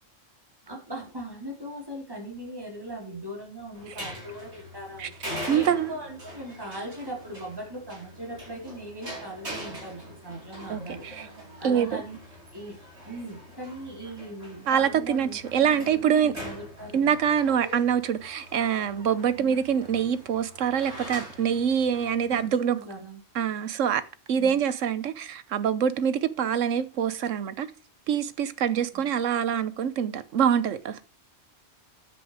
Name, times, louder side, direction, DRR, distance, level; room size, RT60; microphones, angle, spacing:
voice 1, 0.7-11.3 11.6-12.2 12.5-12.8 13.1-17.2 22.2-23.2 24.4-24.6 28.9-29.1, right 1 dB, 20° right, 4.1 m, -40 dB
sound 1, 3.7-22.5, equal, 60° right, 5.6 m, -42 dB
voice 2, 5.5-5.9 10.7-11.3 11.6-11.9 14.7-16.3 16.9-22.8 23.3-24.0 24.3-27.7 28.1-31.0, right 8 dB, 80° right, 1.2 m, -25 dB
9.7 x 8.0 x 4.9 m
omnidirectional pair, 1.3 m